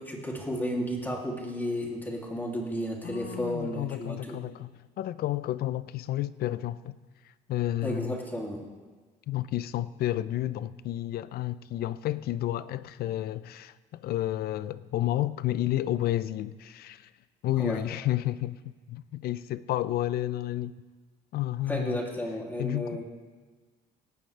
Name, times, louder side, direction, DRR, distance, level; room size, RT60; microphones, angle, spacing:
voice 1, 0.0-4.4 7.8-8.6 17.6-17.8 21.7-23.0, equal, 10° left, 2.8 m, -33 dB
voice 2, 3.0-7.0 7.5-8.2 9.3-17.1 17.4-18.6 18.9-20.7 21.3-22.0 22.6-23.0, left 14 dB, 65° left, 0.5 m, -31 dB
18.0 x 15.0 x 3.3 m
cardioid pair, 110°, 17 cm